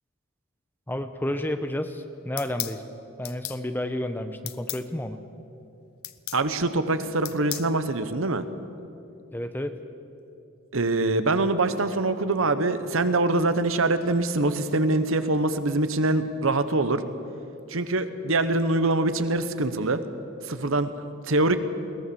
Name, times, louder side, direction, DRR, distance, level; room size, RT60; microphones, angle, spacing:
voice 1, 0.9-2.8 3.2-5.2 9.3-9.8, left 1 dB, 10° left, 8 dB, 0.8 m, -31 dB
sound 1, 2.4-2.8 3.2-3.6 4.5-4.8 6.0-6.4 7.2-7.7, left 15 dB, 80° left, 0.8 m, -34 dB
voice 2, 6.3-8.4 10.7-17.0 17.7-20.0 20.4-21.6, right 2 dB, 65° right, 11 dB, 1.0 m, -24 dB
21.5 x 17.5 x 7.0 m, 2.7 s
head